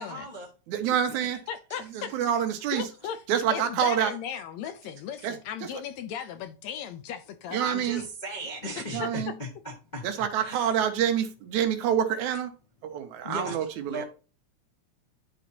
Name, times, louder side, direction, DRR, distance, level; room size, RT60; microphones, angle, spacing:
voice 1, 0.0-0.5 1.1-1.3 1.7-2.3 5.2-5.3 7.6-10.7 13.2-13.6 13.8-14.0, equal, 50° left, 0.5 m, -38 dB
voice 2, 0.7-1.4 1.9-2.9 3.3-4.1 5.2-5.7 7.5-8.0 8.9-9.3 10.0-12.5 12.8-14.0, right 9 dB, 85° right, 2.2 m, -27 dB
voice 3, 1.5-2.2 2.7-3.2 3.5-7.6 7.9-8.1 9.0-9.1, left 8 dB, 75° left, 1.7 m, -36 dB
11.0 x 4.2 x 2.8 m
omnidirectional pair, 3.4 m